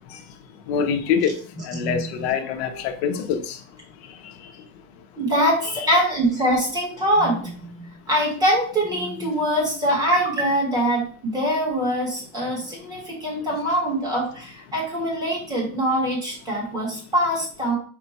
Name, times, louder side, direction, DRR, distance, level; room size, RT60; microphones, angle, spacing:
voice 1, 0.7-1.3 1.6-3.6, left 7 dB, 80° left, 6 dB, 0.7 m, -24 dB
voice 2, 1.8-2.3 5.2-17.8, equal, 10° right, -3 dB, 1.2 m, -23 dB
4.4 x 2.3 x 4.0 m, 0.43 s
cardioid pair, 175°, 31 cm